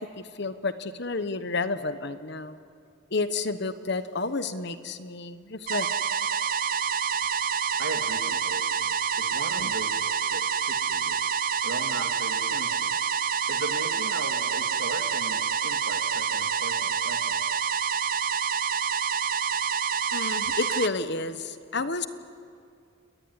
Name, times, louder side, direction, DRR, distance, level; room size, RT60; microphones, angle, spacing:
voice 1, 0.0-2.6 3.1-5.9 9.6-9.7 20.1-22.1, left 3 dB, 55° left, 11 dB, 1.2 m, -30 dB
sound 1, 5.7-20.9, right 7 dB, 40° right, 0.6 m, -27 dB
voice 2, 7.8-11.2 11.6-12.9 13.5-17.4, right 3 dB, 80° right, 5 dB, 2.4 m, -38 dB
29.0 x 20.5 x 9.8 m, 2.3 s
head